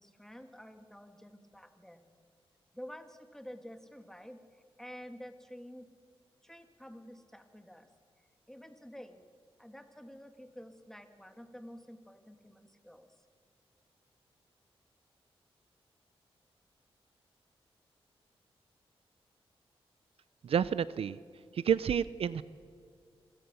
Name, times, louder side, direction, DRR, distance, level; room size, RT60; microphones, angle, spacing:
voice 1, 0.0-2.1 2.7-5.9 6.4-7.9 8.2-9.2 9.6-13.3, equal, 5° left, 7 dB, 1.9 m, -50 dB
voice 2, 20.4-21.2 21.5-22.4, right 8 dB, 70° right, 17 dB, 0.5 m, -29 dB
26.5 x 16.0 x 6.9 m, 2.2 s
cardioid pair, 75°, 10 cm